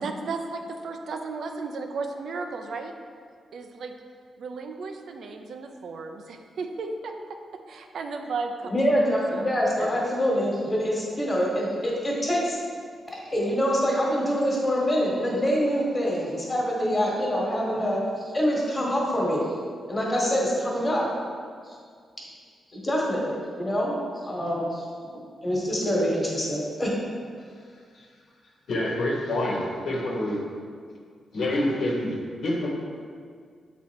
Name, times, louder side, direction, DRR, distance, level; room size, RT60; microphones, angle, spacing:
voice 1, 0.0-2.9 3.5-3.9 4.4-7.4 7.7-9.1 9.3-9.5 9.8-9.9, right 4 dB, 65° right, 4 dB, 0.5 m, -34 dB
voice 2, 8.7-12.6 13.1-19.6 19.9-21.1 21.6-21.8 22.7-24.9 25.4-26.9, equal, 20° left, -3 dB, 1.5 m, -25 dB
voice 3, 28.7-30.4 31.3-32.7, left 1 dB, 65° left, -2 dB, 1.2 m, -27 dB
7.3 x 4.1 x 4.6 m, 2.1 s
wide cardioid pair, 145°, 0 cm